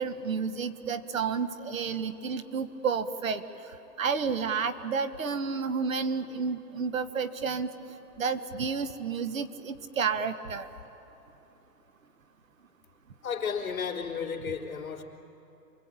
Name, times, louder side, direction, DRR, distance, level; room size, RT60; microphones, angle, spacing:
voice 1, 0.0-3.4 4.0-7.7 8.2-10.7, right 5 dB, 55° right, 11 dB, 1.3 m, -31 dB
voice 2, 13.2-15.0, left 6 dB, 55° left, -2 dB, 3.5 m, -33 dB
27.5 x 22.0 x 8.8 m, 3.0 s
hypercardioid pair, 175°, 49 cm